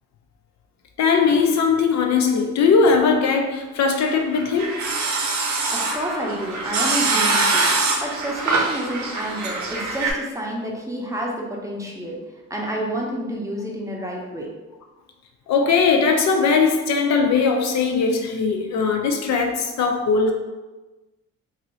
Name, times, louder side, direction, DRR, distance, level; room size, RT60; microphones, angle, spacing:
voice 1, 1.0-4.7 15.5-20.3, left 5 dB, 65° left, 3 dB, 0.5 m, -19 dB
sound 1, 4.2-10.1, right 3 dB, 65° right, 0.7 m, -23 dB
voice 2, 5.7-12.2 12.5-14.5, right 1 dB, 10° right, -2 dB, 0.6 m, -29 dB
2.6 x 2.6 x 3.0 m, 1.1 s
cardioid pair, 90°, 30 cm